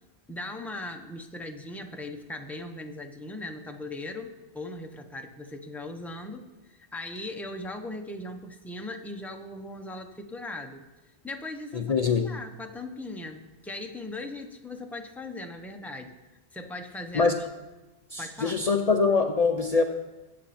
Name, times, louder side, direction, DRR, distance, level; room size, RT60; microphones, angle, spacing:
voice 1, 0.3-10.8 11.2-11.9 12.2-16.1 16.5-17.3 18.2-18.5, left 2 dB, ahead, 4 dB, 0.9 m, -39 dB
voice 2, 11.7-12.3 17.1-17.3 18.1-19.8, left 4 dB, 40° left, 4 dB, 0.8 m, -23 dB
22.0 x 8.2 x 4.3 m, 1.1 s
omnidirectional pair, 1.0 m